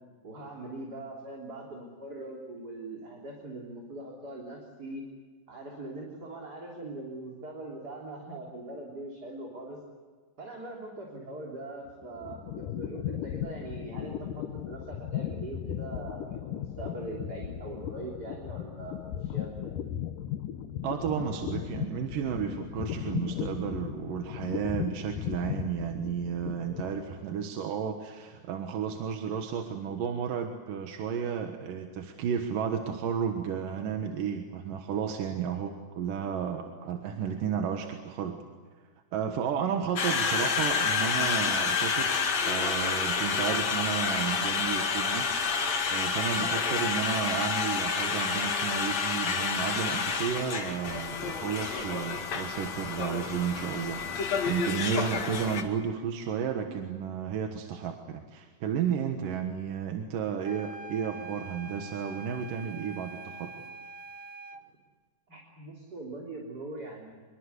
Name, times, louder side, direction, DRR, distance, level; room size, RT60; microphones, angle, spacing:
voice 1, 0.2-5.0 5.5-9.8 10.4-19.7 65.3-67.1, right 2 dB, 30° right, -1 dB, 3.7 m, -41 dB
sound 1, 11.9-27.3, left 11 dB, 75° left, 2.6 m, -36 dB
voice 2, 20.8-38.4 39.1-45.3 45.9-63.5, right 7 dB, 80° right, 4 dB, 3.1 m, -32 dB
Conversation, 40.0-55.6, left 5 dB, 55° left, 3.2 m, -29 dB
sound 2, 60.4-64.7, right 3 dB, 60° right, 2.0 m, -44 dB
25.5 x 23.0 x 8.2 m, 1.5 s
omnidirectional pair, 3.9 m